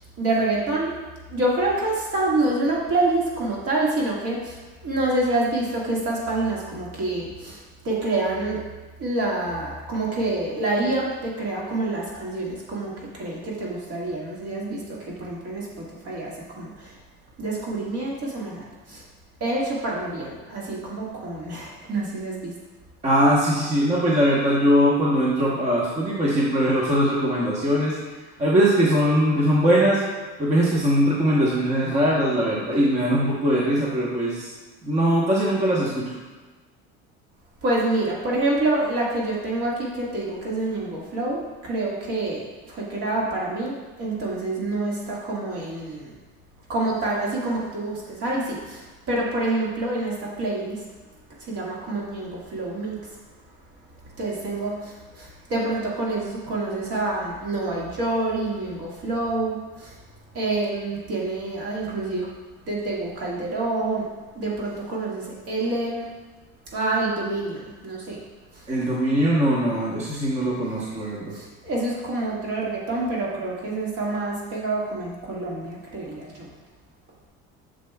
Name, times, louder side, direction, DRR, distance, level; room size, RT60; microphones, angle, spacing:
voice 1, 0.2-0.9 1.3-8.6 9.0-17.0 17.4-19.0 19.4-22.5 37.6-46.2 46.7-50.8 51.4-53.1 54.2-60.0 60.3-62.3 62.7-64.1 64.3-66.1 66.7-68.2 68.5-68.7 70.1-70.2 70.7-71.1 71.3-76.5, right 2 dB, 50° right, -4 dB, 1.8 m, -27 dB
voice 2, 23.0-28.0 28.4-30.0 30.4-34.5 34.8-36.1 68.7-71.3, equal, 25° right, -5 dB, 1.0 m, -21 dB
7.0 x 6.5 x 2.3 m, 1.3 s
cardioid pair, 140°, 29 cm